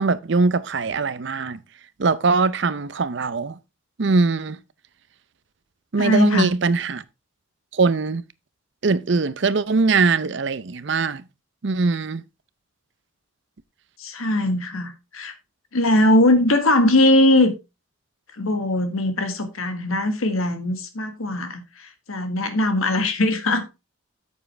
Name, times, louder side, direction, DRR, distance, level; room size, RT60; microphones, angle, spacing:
voice 1, 0.0-1.6 2.0-3.6 4.0-4.6 5.9-7.0 7.7-8.2 8.8-11.2 11.6-12.2, right 4 dB, 55° right, 0.6 m, -21 dB
voice 2, 6.0-6.5 14.0-15.3 15.7-17.5 18.4-23.7, left 1 dB, 85° left, 1.6 m, -20 dB
9.0 x 7.3 x 3.3 m
head